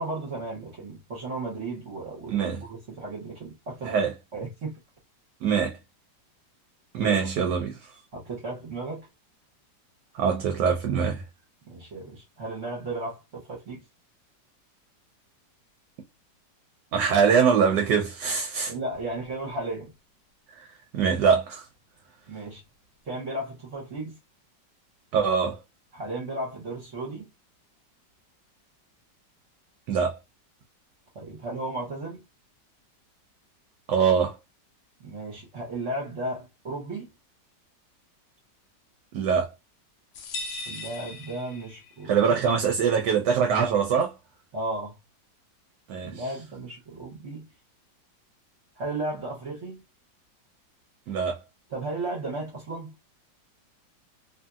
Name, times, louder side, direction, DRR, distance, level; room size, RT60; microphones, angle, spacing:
voice 1, 0.0-4.0 4.3-4.8 7.0-7.2 8.1-9.1 11.7-13.8 18.7-19.9 22.3-22.6 23.0-24.2 25.9-27.3 31.1-32.2 35.0-37.1 40.7-42.6 44.5-45.0 46.0-47.5 48.8-49.8 51.7-52.9, right 2 dB, 50° right, 1.1 m, -34 dB
voice 2, 5.4-5.8 6.9-7.8 10.1-11.2 16.9-18.7 20.6-21.7 25.1-25.6 29.9-30.2 33.9-34.4 39.1-39.5 42.0-44.1 45.9-46.3 51.1-51.4, right 6 dB, 75° right, 1.2 m, -23 dB
sound 1, 40.1-42.1, left 2 dB, 80° left, 0.6 m, -38 dB
2.7 x 2.7 x 2.3 m
omnidirectional pair, 2.0 m